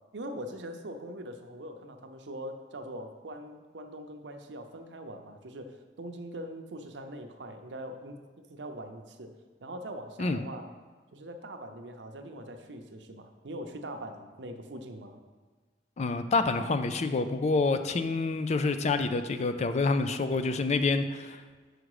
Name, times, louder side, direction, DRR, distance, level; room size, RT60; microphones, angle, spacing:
voice 1, 0.1-9.3 9.6-10.7 11.1-15.2, right 1 dB, 85° right, 5 dB, 0.7 m, -42 dB
voice 2, 16.0-21.4, left 3 dB, 40° left, 9 dB, 0.4 m, -27 dB
6.3 x 5.0 x 4.8 m, 1.4 s
head